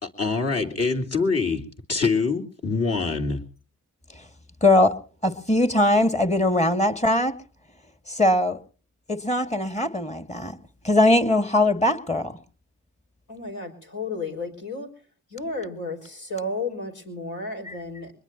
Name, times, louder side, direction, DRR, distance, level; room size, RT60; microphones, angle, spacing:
voice 1, 0.0-1.6 1.9-3.4, left 4 dB, 55° left, 3.4 m, -24 dB
voice 2, 4.6-4.9 5.2-7.3 8.1-8.6 9.1-10.6 10.8-12.3 17.7-17.8, left 1 dB, 25° left, 2.0 m, -21 dB
voice 3, 13.3-14.9 15.3-18.1, left 2 dB, 80° left, 5.4 m, -32 dB
23.0 x 21.5 x 2.9 m
cardioid pair, 65°, 30 cm